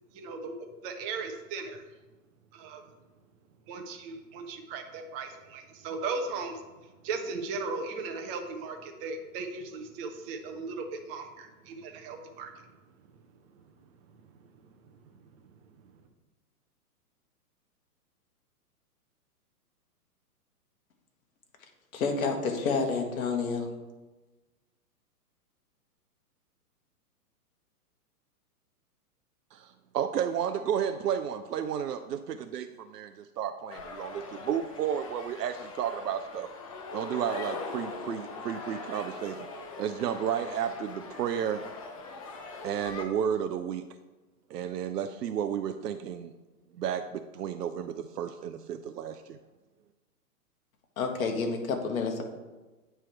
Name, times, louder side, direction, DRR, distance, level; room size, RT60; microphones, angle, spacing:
voice 1, 0.1-0.5 0.8-1.8 2.5-2.8 3.7-6.6 7.0-12.5, right 4 dB, 20° right, 4 dB, 0.6 m, -37 dB
voice 2, 21.9-23.7 51.0-52.2, left 4 dB, 60° left, 4 dB, 1.4 m, -29 dB
voice 3, 29.5-36.5 36.9-39.5 39.8-41.6 42.6-43.8 44.5-46.3 46.8-49.4, right 9 dB, 90° right, 8 dB, 0.5 m, -32 dB
sound 1, 33.7-43.0, left 3 dB, 25° left, 0.4 m, -41 dB
8.8 x 3.4 x 4.5 m, 1.2 s
hypercardioid pair, 130°, 47 cm